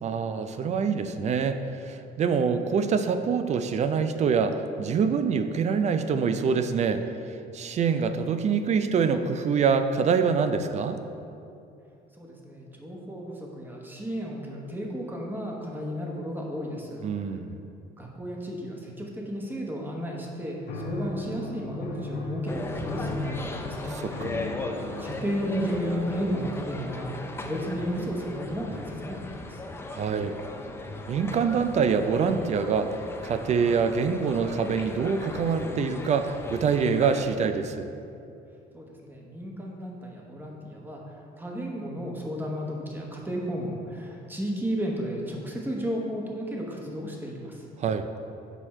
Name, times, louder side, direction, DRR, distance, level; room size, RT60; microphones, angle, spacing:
voice 1, 0.0-7.0 7.5-11.0 17.0-17.6 24.2-24.4 29.9-30.3 31.1-32.9 33.2-37.9 47.8-48.1, right 6 dB, 40° right, 9 dB, 0.4 m, -25 dB
voice 2, 12.2-17.3 18.0-24.5 25.0-29.6 38.7-47.7, equal, 10° right, -1 dB, 1.1 m, -33 dB
sound 1, 20.7-27.1, left 2 dB, 80° left, 1.0 m, -37 dB
sound 2, 22.5-37.3, left 2 dB, 15° left, 0.5 m, -38 dB
6.8 x 4.5 x 4.3 m, 2.6 s
cardioid pair, 110°, 17 cm